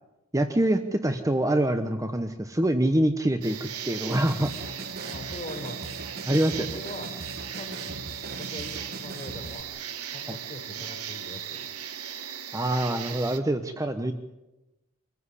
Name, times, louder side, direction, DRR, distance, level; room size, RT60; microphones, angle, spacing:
voice 1, 0.3-4.5 6.3-6.8 10.3-10.4 12.5-14.1, right 1 dB, 15° right, 7 dB, 1.1 m, -25 dB
sound 1, 3.4-13.4, right 8 dB, 80° right, 1.8 m, -37 dB
sound 2, 4.1-9.6, right 2 dB, 45° right, 1.2 m, -40 dB
voice 2, 5.1-5.9 6.5-7.1 7.5-8.0 8.3-9.7 10.1-11.7, left 1 dB, 30° left, 2 dB, 5.3 m, -41 dB
26.0 x 15.5 x 9.9 m, 1.0 s
head